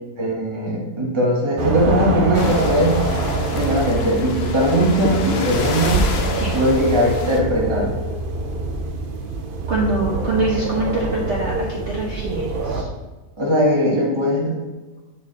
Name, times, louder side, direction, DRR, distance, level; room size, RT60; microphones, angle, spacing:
voice 1, 0.2-3.0 3.5-6.1 6.5-7.9 13.4-14.6, equal, 15° right, -3 dB, 1.3 m, -19 dB
sound 1, 1.6-12.8, right 2 dB, 90° right, 0.4 m, -24 dB
sound 2, 2.3-7.4, left 4 dB, 55° left, 0.7 m, -30 dB
voice 2, 9.7-12.9, right 2 dB, 45° right, -5 dB, 1.2 m, -24 dB
8.2 x 4.8 x 4.0 m, 1.2 s
omnidirectional pair, 1.9 m